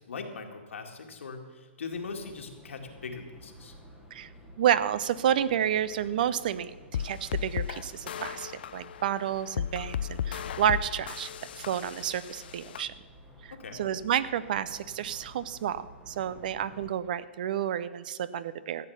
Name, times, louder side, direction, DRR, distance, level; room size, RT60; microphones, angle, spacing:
voice 1, 0.0-3.7 13.5-13.8, left 4 dB, 85° left, 3 dB, 2.0 m, -40 dB
sound 1, 1.9-16.9, equal, 10° right, 1.2 m, -52 dB
voice 2, 4.6-11.3 11.6-12.9 13.4-18.9, right 10 dB, 45° right, 17 dB, 0.5 m, -30 dB
sound 2, 6.9-12.8, left 9 dB, 50° left, 0.5 m, -35 dB
13.5 x 8.0 x 7.1 m, 1.5 s
hypercardioid pair, 165°, 7 cm